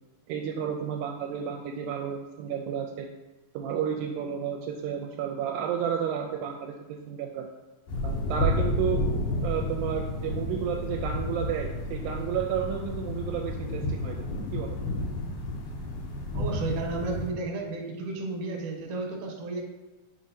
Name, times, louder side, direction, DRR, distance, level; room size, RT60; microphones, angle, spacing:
voice 1, 0.3-3.1 3.5-7.5 8.0-9.0 9.4-14.3 14.5-14.8, right 8 dB, 85° right, 2 dB, 2.3 m, -32 dB
sound 1, 7.9-17.3, left 1 dB, 80° left, 3.0 m, -31 dB
voice 2, 16.3-19.6, right 3 dB, 65° right, 2 dB, 2.4 m, -33 dB
6.0 x 5.0 x 4.2 m, 1.2 s
omnidirectional pair, 4.1 m